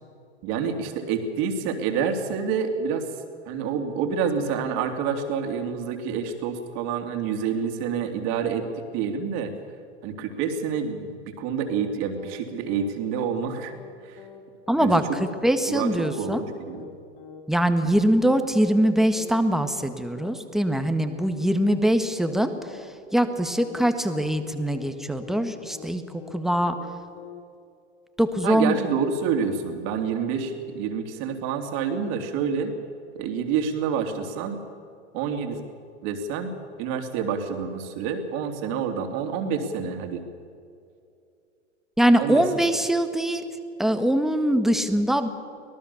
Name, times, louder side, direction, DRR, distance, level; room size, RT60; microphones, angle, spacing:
voice 1, 0.4-3.1 3.4-8.7 8.9-9.5 10.0-13.7 14.0-14.2 14.8-15.2 15.7-16.9 28.4-32.7 33.1-34.6 35.1-35.6 36.0-40.2 42.2-42.5, right 6 dB, 50° right, 5 dB, 3.2 m, -28 dB
sound 1, 11.7-11.9 12.2-12.4 12.7-12.9 13.2-13.4 13.7-13.9 14.2-14.4 14.7-14.9 15.2-15.4 15.7-15.9 16.2-16.4 16.7-16.9 17.2-17.4 17.7-17.9 18.2-18.4 18.7-18.9 19.2-19.4 19.7-19.9 20.2-20.4 20.7-20.9 21.2-21.4 21.7-21.9 22.2-22.4 22.7-22.9 23.2-23.4 23.7-23.9 24.2-24.4 24.7-24.9 25.2-25.4 25.7-25.9 26.2-26.4 26.7-26.9 27.2-27.4, left 7 dB, 55° left, 3.7 m, -44 dB
voice 2, 14.7-15.0 15.4-16.4 17.5-22.9 23.1-26.0 26.3-26.7 28.2-28.8 42.0-43.4 43.8-45.3, right 1 dB, ahead, 8 dB, 1.5 m, -22 dB
25.0 x 18.0 x 7.1 m, 2.4 s
hypercardioid pair, 105°, 36 cm